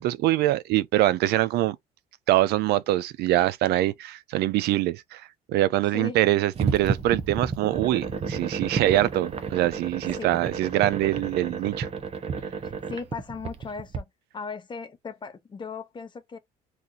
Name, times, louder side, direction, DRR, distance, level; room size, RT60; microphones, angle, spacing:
voice 1, 0.0-1.8 2.3-5.2 5.5-11.9, right 15 dB, 75° right, 0.4 m, -24 dB
sound 1, 6.5-14.0, right 5 dB, 35° right, 0.7 m, -31 dB
voice 2, 12.6-14.0 14.3-16.4, left 5 dB, 25° left, 0.7 m, -37 dB
2.9 x 2.5 x 3.7 m
cardioid pair, 110°, 17 cm